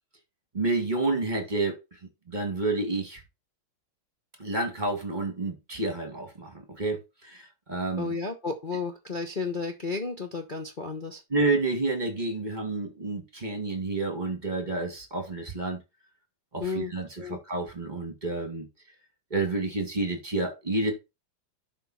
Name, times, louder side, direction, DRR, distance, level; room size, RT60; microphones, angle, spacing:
voice 1, 0.5-2.0 2.3-3.2 4.4-8.1 11.3-15.8 16.5-18.7 19.3-20.9, right 2 dB, 20° right, 2.4 m, -29 dB
voice 2, 8.0-11.2 16.6-16.9 17.2-17.4, left 4 dB, 40° left, 0.7 m, -32 dB
11.5 x 4.7 x 4.3 m
omnidirectional pair, 2.3 m